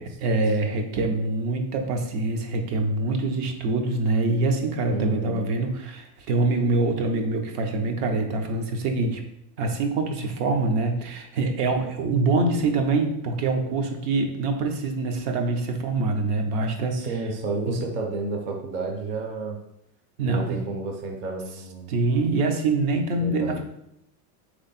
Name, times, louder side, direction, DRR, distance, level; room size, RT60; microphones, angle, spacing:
voice 1, 0.2-9.2 9.6-17.1 17.7-17.8 20.2-20.6 21.9-23.6, right 3 dB, 70° right, 4 dB, 0.9 m, -25 dB
voice 2, 4.9-5.4 16.9-19.6 20.2-21.9 23.2-23.6, right 3 dB, 25° right, 1 dB, 0.5 m, -31 dB
3.4 x 3.3 x 4.1 m, 0.79 s
supercardioid pair, 150°, 47 cm